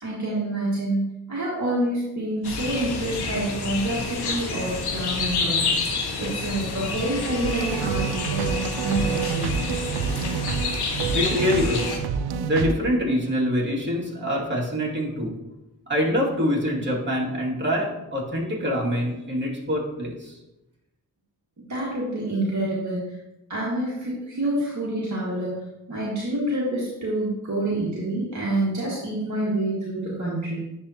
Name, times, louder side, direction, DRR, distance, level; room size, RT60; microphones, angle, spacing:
voice 1, 0.0-9.7 21.7-23.2 23.5-25.5 25.9-30.6, right 1 dB, 45° right, -7 dB, 1.8 m, -27 dB
sound 1, 2.4-12.0, left 4 dB, 80° left, 0.9 m, -29 dB
sound 2, 7.4-12.7, right 6 dB, 75° right, 0.5 m, -28 dB
voice 2, 11.1-12.0 12.4-15.3 15.9-20.4, equal, 30° right, -5 dB, 2.3 m, -25 dB
10.5 x 3.6 x 2.9 m, 0.94 s
supercardioid pair, 40°, 39 cm